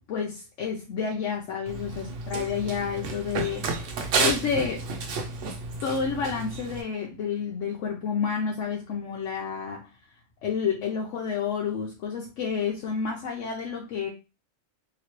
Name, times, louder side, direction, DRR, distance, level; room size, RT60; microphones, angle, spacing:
voice 1, 0.1-3.9 4.2-4.9 5.8-9.9 10.4-14.1, left 6 dB, 75° left, 1.0 m, -30 dB
Run, 1.7-6.8, right 4 dB, 75° right, 1.0 m, -31 dB
3.0 x 2.8 x 2.9 m
omnidirectional pair, 1.3 m